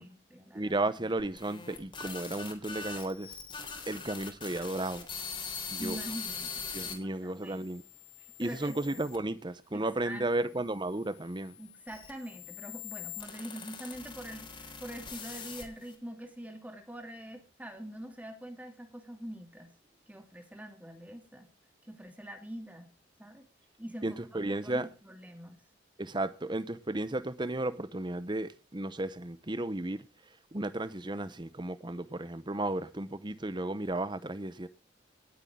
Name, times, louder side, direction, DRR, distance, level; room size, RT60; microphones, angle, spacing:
voice 1, 0.0-1.1 5.8-7.7 8.4-9.0 9.7-10.3 11.6-19.7 20.1-21.5 21.9-22.9 23.2-23.4 23.8-24.2 24.6-25.6, right 1 dB, 10° right, 2.8 m, -44 dB
voice 2, 0.5-3.3 3.9-5.1 5.7-6.0 6.7-7.8 8.4-11.6 24.0-24.9 26.0-30.0 30.5-34.7, right 2 dB, 25° right, 0.9 m, -34 dB
sound 1, 1.2-6.9 7.6-9.2 10.0-16.0, left 6 dB, 30° left, 3.8 m, -43 dB
19.0 x 8.3 x 3.8 m
head